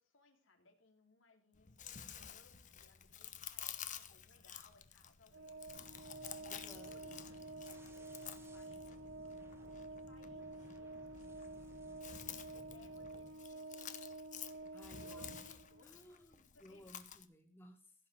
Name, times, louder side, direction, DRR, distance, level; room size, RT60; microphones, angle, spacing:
voice 1, 0.0-11.6 12.1-14.1 14.5-16.1 16.5-17.0, left 3 dB, 80° left, 3 dB, 2.8 m, -68 dB
Chewing mastication, 1.5-17.2, left 9 dB, 40° left, 1.0 m, -52 dB
Organ, 5.3-16.0, right 2 dB, 75° right, 0.8 m, -50 dB
sound 1, 5.7-13.3, equal, 15° right, 1.5 m, -60 dB
voice 2, 6.5-6.9 14.7-15.5 15.8-17.9, equal, 10° left, 2 dB, 2.2 m, -59 dB
16.0 x 5.7 x 7.4 m, 0.41 s
head